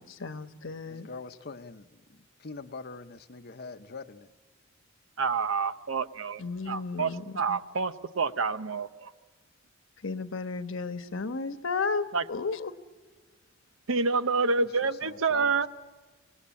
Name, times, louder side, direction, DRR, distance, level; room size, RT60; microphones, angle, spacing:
voice 1, 0.0-1.1 6.4-7.6 10.0-12.7, left 4 dB, 70° left, 1.1 m, -34 dB
voice 2, 0.9-4.3 14.8-15.5, left 4 dB, 50° left, 0.8 m, -43 dB
voice 3, 5.2-6.4 6.7-7.1 7.4-9.1 12.1-12.2 13.9-15.7, right 4 dB, 80° right, 0.9 m, -28 dB
25.5 x 19.0 x 8.6 m
head